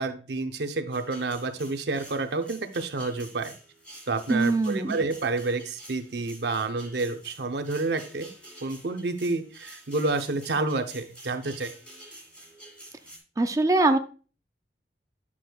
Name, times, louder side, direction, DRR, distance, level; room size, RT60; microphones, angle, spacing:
voice 1, 0.0-3.5 4.1-8.3 8.6-11.7, right 3 dB, 70° right, 7 dB, 0.7 m, -29 dB
sound 1, 0.9-13.2, right 1 dB, 5° left, 1.9 m, -49 dB
voice 2, 4.3-5.0 13.4-14.0, right 2 dB, 20° right, 8 dB, 0.4 m, -22 dB
8.5 x 6.1 x 2.3 m, 0.37 s
head